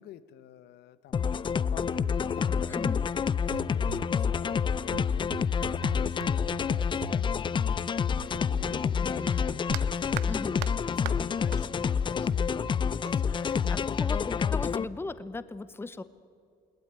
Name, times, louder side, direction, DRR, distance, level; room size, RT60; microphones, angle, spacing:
voice 1, 0.0-2.8 3.4-8.0 8.8-9.4 9.8-10.3 10.9-14.0, left 11 dB, 75° left, 14 dB, 1.0 m, -50 dB
sound 1, 1.1-14.8, left 6 dB, 30° left, 0.5 m, -28 dB
sound 2, 1.1-1.2 1.5-8.9 9.2-11.6 11.9-13.1, right 13 dB, 85° right, 0.8 m, -43 dB
sound 3, 2.4-2.9 8.5-9.0 11.0-11.3 11.6-11.9, left 4 dB, 50° left, 3.8 m, -45 dB
voice 2, 2.7-3.0 9.0-9.5 10.2-10.6 13.7-14.2 14.5-16.0, left 3 dB, 15° left, 14 dB, 0.8 m, -37 dB
21.0 x 18.5 x 9.5 m, 2.3 s
cardioid pair, 110°, 17 cm